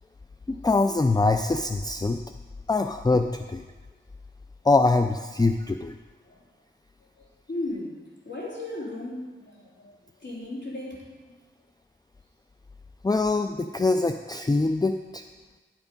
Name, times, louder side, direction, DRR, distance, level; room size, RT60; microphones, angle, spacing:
voice 1, 0.5-2.2 2.7-3.6 4.6-5.9 13.0-15.2, left 3 dB, 20° left, 7 dB, 0.4 m, -23 dB
voice 2, 7.2-8.0 8.2-11.3, left 2 dB, 60° left, -5 dB, 3.3 m, -36 dB
11.5 x 7.3 x 5.3 m, 1.3 s
wide cardioid pair, 60°, 21 cm